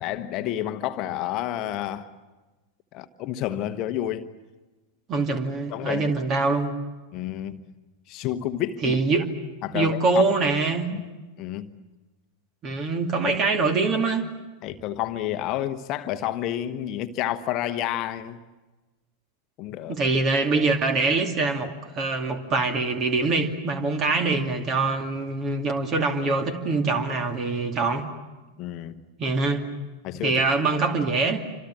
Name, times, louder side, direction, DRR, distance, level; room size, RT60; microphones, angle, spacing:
voice 1, 0.0-2.1 2.9-4.3 5.7-6.1 7.1-7.6 8.1-9.0 9.6-10.2 10.9-11.0 11.4-11.7 13.2-13.3 14.6-18.4 19.6-20.0 28.6-29.0 30.0-30.4, left 12 dB, 40° left, 1.2 m, -30 dB
voice 2, 5.1-6.7 8.8-9.3 9.7-10.9 12.6-14.3 19.9-28.0 29.2-29.6 30.2-31.4, right 3 dB, 30° right, 2.5 m, -24 dB
27.5 x 26.5 x 7.5 m
figure-of-eight pair, 90°, 0 cm